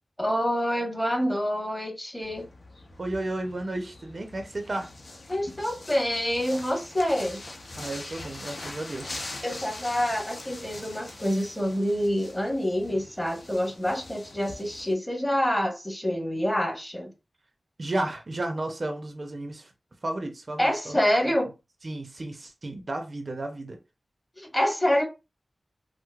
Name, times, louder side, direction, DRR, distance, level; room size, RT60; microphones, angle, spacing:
voice 1, 0.2-2.4 5.3-7.4 9.4-17.1 20.6-21.5 24.4-25.0, equal, 15° left, 1.2 m, -27 dB
sound 1, 2.2-14.9, left 2 dB, 70° left, 0.8 m, -43 dB
voice 2, 3.0-4.9 7.8-9.2 17.8-19.7 20.0-20.9 21.8-23.8, right 2 dB, 50° right, 0.6 m, -33 dB
4.5 x 2.0 x 2.3 m
wide cardioid pair, 70°, 0 cm